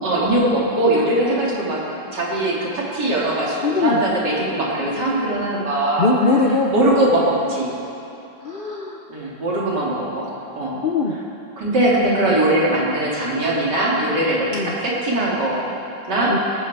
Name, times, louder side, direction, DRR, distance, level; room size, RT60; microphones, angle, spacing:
voice 1, 0.0-1.8 2.1-6.1 6.7-7.7 9.1-10.8 11.6-15.7 16.1-16.3, right 1 dB, 65° right, -5 dB, 3.0 m, -21 dB
voice 2, 3.6-4.0 6.0-6.7 8.4-9.0 10.8-11.1 14.5-14.7 16.3-16.4, left 3 dB, 55° left, 1 dB, 0.6 m, -20 dB
19.5 x 9.3 x 4.7 m, 2.8 s
omnidirectional pair, 2.0 m